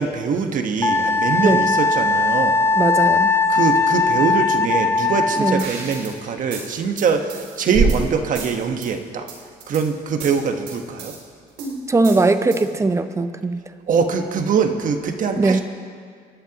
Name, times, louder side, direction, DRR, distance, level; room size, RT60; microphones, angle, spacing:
voice 1, 0.0-2.6 3.5-9.3 9.7-11.1 13.9-15.6, right 5 dB, 50° right, 5 dB, 1.3 m, -22 dB
Wind instrument woodwind instrument, 0.8-5.7, left 3 dB, 15° left, 0.4 m, -19 dB
voice 2, 1.4-1.8 2.7-3.3 5.4-5.7 11.9-13.6 15.4-15.6, right 3 dB, 15° right, 10 dB, 0.7 m, -19 dB
sound 1, 5.6-6.1 6.5-8.0 8.3-8.9 9.3-9.8 10.2-11.2 11.6-12.8, right 4 dB, 85° right, 3.1 m, -35 dB
27.0 x 11.5 x 3.0 m, 2.1 s
cardioid pair, 110°, 17 cm